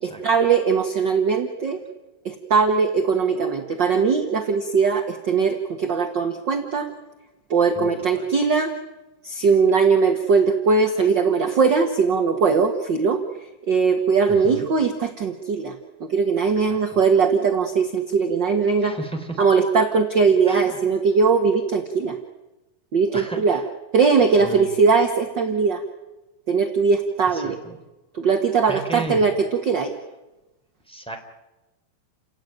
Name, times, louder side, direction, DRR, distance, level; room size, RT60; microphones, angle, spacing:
voice 1, 0.0-1.8 2.2-6.9 7.5-8.7 9.2-13.2 13.7-15.7 16.0-19.0 19.4-22.1 22.9-23.6 23.9-25.8 26.5-27.6 28.2-29.3 29.6-29.9, right 5 dB, 50° right, 5 dB, 1.4 m, -20 dB
voice 2, 7.7-8.3 14.3-14.6 16.6-17.0 18.8-19.4 20.5-20.8 23.1-23.7 24.4-24.7 27.3-27.8 28.7-29.3 30.9-31.2, right 2 dB, ahead, 3 dB, 3.2 m, -35 dB
30.0 x 17.5 x 9.3 m, 1.1 s
omnidirectional pair, 4.3 m